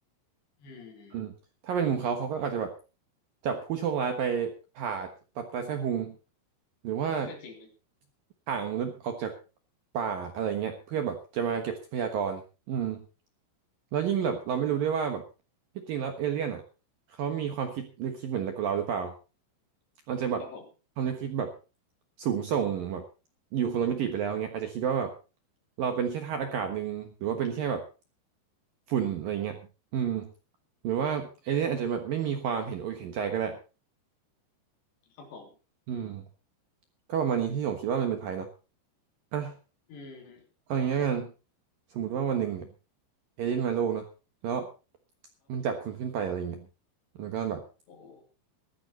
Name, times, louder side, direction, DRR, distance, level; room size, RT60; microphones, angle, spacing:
voice 1, 0.6-1.2 7.3-7.7 20.4-20.7 35.1-35.5 39.9-40.5 47.9-48.2, left 4 dB, 65° left, 3 dB, 5.4 m, -47 dB
voice 2, 1.6-2.7 3.4-5.1 5.4-6.2 6.8-7.3 8.5-9.3 9.9-12.4 12.7-13.1 13.9-15.2 15.8-16.6 17.1-19.1 20.1-20.4 21.0-21.5 22.2-23.0 23.5-25.1 25.8-27.8 28.9-29.6 29.9-30.3 30.8-33.6 35.9-36.3 37.1-38.5 39.3-39.6 40.7-41.3 41.9-42.7 43.4-44.1 44.4-44.7 45.5-46.7 47.2-47.6, right 8 dB, 65° right, 6 dB, 2.4 m, -30 dB
16.0 x 13.5 x 4.2 m, 0.33 s
omnidirectional pair, 5.6 m